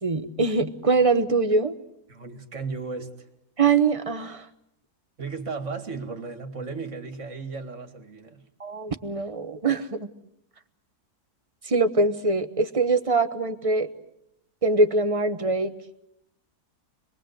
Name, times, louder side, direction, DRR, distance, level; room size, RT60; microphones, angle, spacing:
voice 1, 0.0-1.7 3.6-4.4 8.6-10.1 11.6-13.9 14.6-15.7, right 3 dB, 25° right, 1.1 m, -23 dB
voice 2, 2.1-3.3 5.2-8.5, right 4 dB, 50° right, 2.3 m, -35 dB
27.0 x 21.5 x 8.0 m
omnidirectional pair, 1.7 m